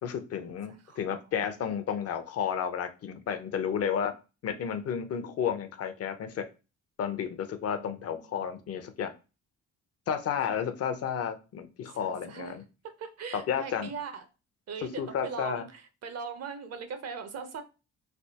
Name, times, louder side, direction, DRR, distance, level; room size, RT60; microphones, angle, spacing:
voice 1, 0.0-4.2 4.4-6.5 7.0-9.1 10.1-12.6 13.3-13.9 15.0-15.6, left 8 dB, 55° left, 9 dB, 0.6 m, -32 dB
voice 2, 0.7-1.3 7.7-8.5 10.3-10.6 11.9-12.6 12.8-14.3 14.7-17.6, right 5 dB, 55° right, 8 dB, 0.7 m, -41 dB
3.4 x 2.7 x 2.8 m, 0.30 s
cardioid pair, 90°, 30 cm